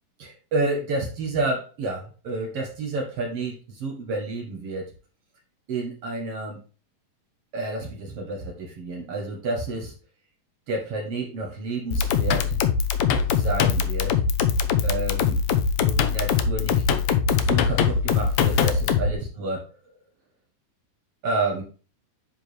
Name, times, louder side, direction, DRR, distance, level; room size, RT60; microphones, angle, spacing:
voice 1, 0.2-4.9 5.7-6.6 7.5-9.9 10.7-12.6 13.3-14.1 14.8-15.4 15.8-16.9 17.4-19.6 21.2-21.6, right 2 dB, 55° right, 2 dB, 1.9 m, -30 dB
sound 1, 11.9-19.1, left 6 dB, 70° left, 1.8 m, -22 dB
9.4 x 4.8 x 3.2 m, 0.35 s
omnidirectional pair, 3.9 m